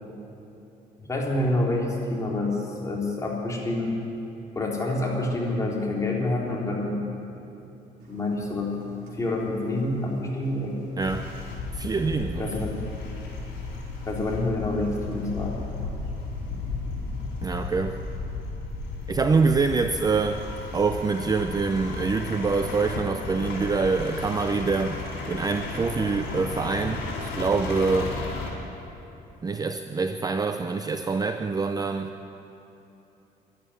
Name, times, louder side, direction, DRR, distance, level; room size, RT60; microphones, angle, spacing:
voice 1, 1.0-4.0 4.6-7.0 7.3-7.4 8.1-8.8 9.1-10.8 12.4-12.8 14.1-15.6, left 2 dB, 20° left, -3 dB, 3.6 m, -27 dB
Engine, 8.0-18.1, equal, 85° right, 3.8 m, -45 dB
sound 1, 11.0-28.5, left 3 dB, 85° left, 4.4 m, -34 dB
voice 2, 11.0-11.3 11.7-12.5 17.4-18.0 19.1-20.4 20.7-25.0 25.3-28.1 29.4-32.1, right 4 dB, 20° right, 7 dB, 0.6 m, -25 dB
12.5 x 11.5 x 9.8 m, 3.0 s
cardioid pair, 110°, 17 cm